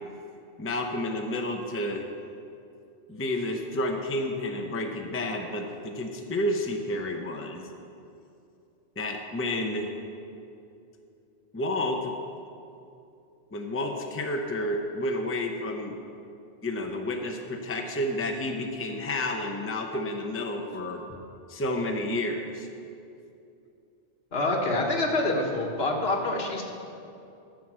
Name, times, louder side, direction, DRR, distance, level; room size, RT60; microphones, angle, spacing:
voice 1, 0.6-2.0 3.1-7.7 9.0-9.9 11.5-12.2 13.5-15.9 16.6-21.0 21.5-22.7, left 1 dB, 15° left, 3 dB, 0.6 m, -30 dB
voice 2, 24.3-26.6, left 2 dB, 65° left, 1 dB, 1.5 m, -26 dB
11.0 x 6.2 x 7.4 m, 2.6 s
omnidirectional pair, 1.1 m